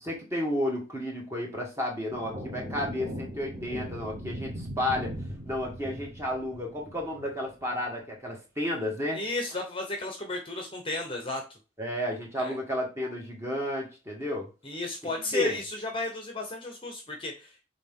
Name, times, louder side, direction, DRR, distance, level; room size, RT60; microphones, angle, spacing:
voice 1, 0.0-5.1 5.5-9.2 11.8-14.5 15.3-15.6, left 1 dB, 15° right, -1 dB, 1.6 m, -32 dB
sound 1, 2.1-7.7, equal, 30° right, 1.2 m, -39 dB
voice 2, 9.1-11.4 12.4-12.5 14.6-17.6, left 2 dB, 25° left, 2 dB, 0.9 m, -33 dB
6.6 x 3.9 x 3.6 m, 0.32 s
head